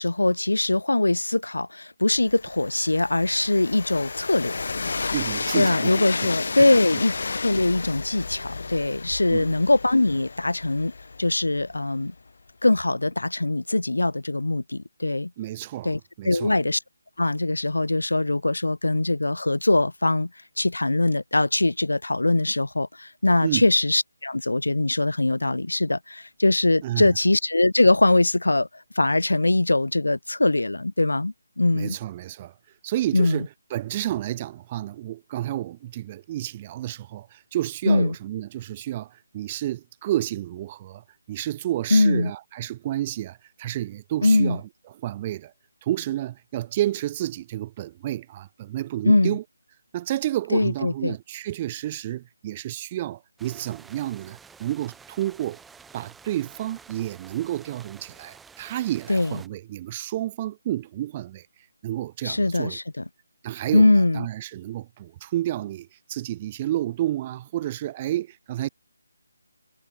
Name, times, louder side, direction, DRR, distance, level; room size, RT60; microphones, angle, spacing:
voice 1, 0.0-4.6 5.5-7.1 7.4-10.9 11.2-12.1 12.6-15.3 15.8-16.8 17.2-20.3 20.6-28.7 28.9-32.0 33.1-33.5 37.9-38.1 41.9-42.3 44.2-44.6 49.0-49.4 50.5-51.1 59.1-59.4 62.2-63.0 63.7-64.2, left 2 dB, 85° left, 1.5 m, -22 dB
Train, 2.1-12.0, left 4 dB, 60° left, 1.9 m, -32 dB
voice 2, 5.1-6.3 9.3-9.5 15.4-16.6 23.4-23.7 26.8-27.1 31.7-32.5 32.8-41.0 41.3-44.6 44.9-45.5 45.8-49.4 49.9-55.6 55.9-61.5 61.8-62.8 63.4-68.7, right 13 dB, 25° right, 0.5 m, -30 dB
sound 1, 53.4-59.5, right 5 dB, 5° right, 5.2 m, -50 dB
figure-of-eight pair, 155°, 0 cm